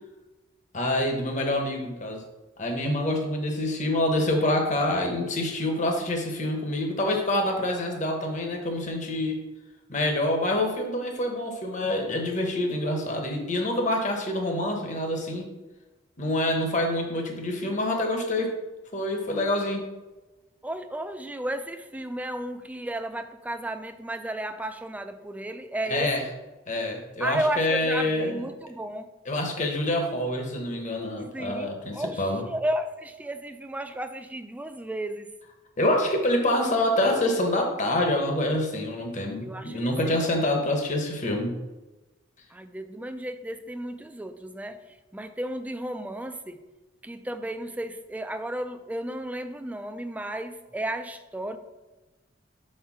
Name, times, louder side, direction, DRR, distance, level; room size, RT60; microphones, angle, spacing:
voice 1, 0.7-2.2 2.6-9.4 9.9-15.5 16.2-18.5 18.9-19.8 25.9-26.2 26.7-28.4 29.3-32.4 35.8-41.5, left 1 dB, 40° left, 2 dB, 1.0 m, -26 dB
voice 2, 20.6-26.3 27.2-29.1 31.3-35.3 39.4-40.2 42.5-46.6 47.0-51.6, right 1 dB, 10° right, 8 dB, 0.4 m, -33 dB
4.6 x 4.4 x 5.9 m, 1.1 s
head